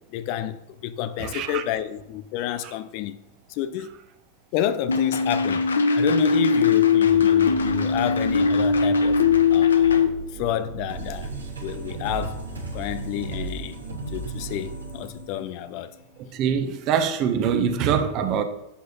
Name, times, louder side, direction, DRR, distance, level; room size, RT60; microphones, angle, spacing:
voice 1, 0.1-3.2 3.5-4.0 4.5-5.7 6.0-9.2 9.5-10.0 10.3-11.3 11.6-12.4 12.7-13.8 14.1-15.9, left 11 dB, 45° left, 0.7 m, -29 dB
sound 1, 4.9-10.1, left 6 dB, 70° left, 1.1 m, -20 dB
sound 2, 7.0-15.4, right 5 dB, 65° right, 2.1 m, -38 dB
sound 3, 10.9-16.2, right 2 dB, 80° right, 3.3 m, -36 dB
voice 2, 16.3-18.4, right 7 dB, 40° right, 1.3 m, -23 dB
11.5 x 8.3 x 4.2 m
figure-of-eight pair, 90°, 0 cm